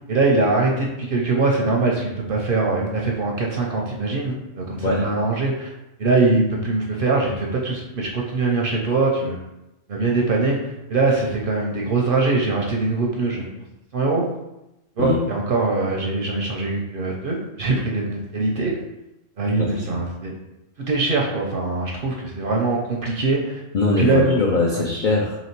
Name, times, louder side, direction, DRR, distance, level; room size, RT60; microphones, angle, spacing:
voice 1, 0.1-5.7 6.0-9.4 9.9-10.6 10.9-13.5 13.9-14.3 15.0-18.7 19.4-20.3 20.8-23.6 24.0-24.4 24.7-24.8, right 3 dB, 55° right, -1 dB, 0.6 m, -22 dB
voice 2, 23.7-25.4, left 3 dB, 65° left, -2 dB, 0.5 m, -21 dB
3.0 x 3.0 x 4.4 m, 0.93 s
omnidirectional pair, 1.4 m